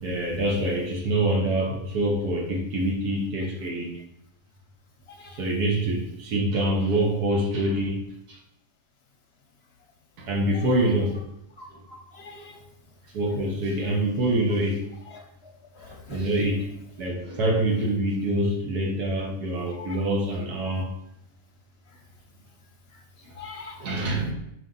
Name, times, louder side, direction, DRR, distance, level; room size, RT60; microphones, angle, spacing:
voice 1, 0.0-4.0 5.4-8.0 8.3-8.4 10.2-11.2 11.7-11.8 13.1-14.8 16.1-16.7 17.0-20.9 23.2-23.3 23.8-24.3, right 1 dB, 80° right, -1 dB, 1.7 m, -25 dB
voice 2, 11.6-12.5 15.8-16.2 19.8-19.9 23.4-23.8, left 4 dB, 50° left, 3 dB, 0.8 m, -43 dB
5.8 x 4.8 x 3.9 m, 0.81 s
omnidirectional pair, 1.6 m